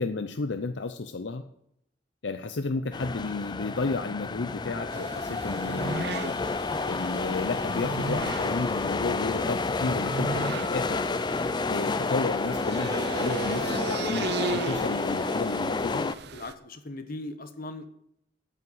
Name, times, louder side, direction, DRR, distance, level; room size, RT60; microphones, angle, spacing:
voice 1, 0.0-1.4 2.2-6.3 6.8-11.0 11.7-16.1, left 3 dB, 70° left, 8 dB, 0.6 m, -32 dB
sound 1, 2.9-16.1, left 3 dB, 25° left, 0.4 m, -30 dB
sound 2, 4.9-16.5, right 4 dB, 60° right, 0.7 m, -36 dB
voice 2, 14.3-15.0 16.3-17.9, left 2 dB, 50° left, 9 dB, 1.1 m, -40 dB
9.2 x 8.5 x 8.0 m, 0.75 s
head